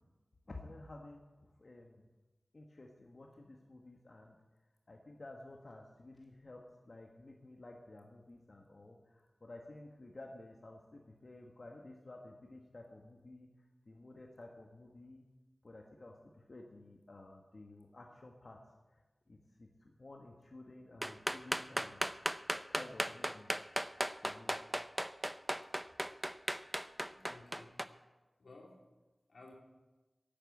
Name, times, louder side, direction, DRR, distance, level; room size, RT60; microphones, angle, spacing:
voice 1, 0.5-2.1 2.5-4.4 4.9-13.5 13.8-15.2 15.6-18.6 18.9-19.0 19.3-22.1 22.7-23.5 24.2-24.6, left 2 dB, 55° left, 1 dB, 1.5 m, -53 dB
sound 1, 21.0-27.9, equal, 10° right, 0.6 m, -36 dB
voice 2, 27.1-27.8 28.4-28.9 29.3-29.5, left 2 dB, 90° left, 0 dB, 3.0 m, -56 dB
11.5 x 9.1 x 8.4 m, 1.1 s
wide cardioid pair, 65°, 0 cm